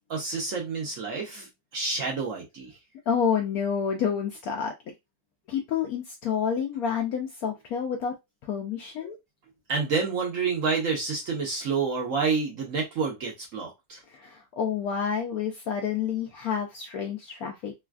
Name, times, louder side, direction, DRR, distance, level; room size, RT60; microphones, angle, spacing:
voice 1, 0.0-2.7 9.0-9.1 9.7-14.0, right 5 dB, 60° right, -1 dB, 1.0 m, -29 dB
voice 2, 3.1-4.7 5.5-8.1 8.4-9.2 14.1-17.7, left 7 dB, 75° left, 3 dB, 0.8 m, -29 dB
3.2 x 2.4 x 2.3 m, 0.21 s
omnidirectional pair, 2.0 m